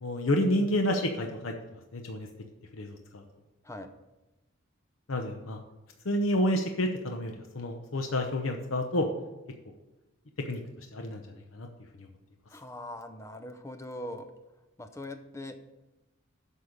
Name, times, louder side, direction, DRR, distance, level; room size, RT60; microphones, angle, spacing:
voice 1, 0.0-1.5 1.9-2.3 2.7-3.2 5.1-5.6 6.0-9.1 10.5-10.6 10.9-11.2 11.5-11.7 12.0-12.1, left 1 dB, 75° left, 4 dB, 0.8 m, -29 dB
voice 2, 12.5-14.3 14.8-15.5, left 1 dB, 15° left, 8 dB, 0.6 m, -41 dB
8.1 x 5.5 x 6.5 m, 1.0 s
head